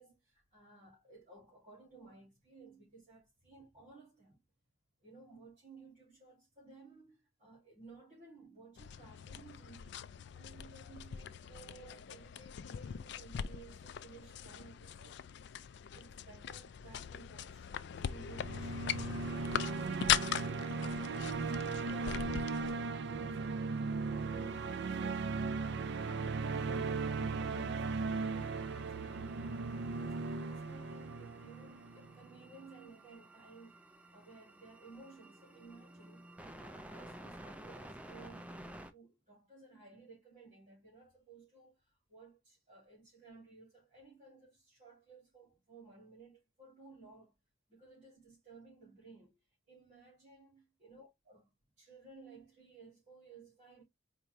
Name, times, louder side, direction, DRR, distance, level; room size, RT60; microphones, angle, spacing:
voice 1, 0.0-4.4 5.0-10.0 10.3-25.3 25.6-29.7 30.1-33.8 34.1-36.3 36.6-47.4 47.7-49.4 49.7-53.8, right 3 dB, 40° right, 2.4 m, -57 dB
sound 1, 8.8-22.7, left 9 dB, 60° left, 0.3 m, -40 dB
sound 2, 18.0-32.2, right 4 dB, 60° right, 0.5 m, -37 dB
sound 3, 28.1-38.9, right 1 dB, 5° right, 0.5 m, -53 dB
4.5 x 2.7 x 3.1 m
head